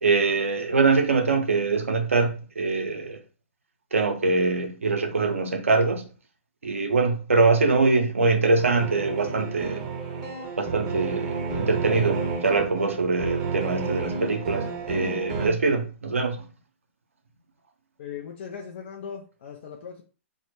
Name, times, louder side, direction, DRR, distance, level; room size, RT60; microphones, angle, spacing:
voice 1, 0.0-3.2 3.9-6.0 6.6-9.9 10.6-16.4, right 3 dB, 85° right, 0.5 m, -23 dB
sound 1, 8.6-15.5, right 4 dB, 40° right, 0.6 m, -31 dB
voice 2, 18.0-20.0, left 7 dB, 60° left, 0.4 m, -38 dB
2.1 x 2.1 x 2.9 m
hypercardioid pair, 120°, 7 cm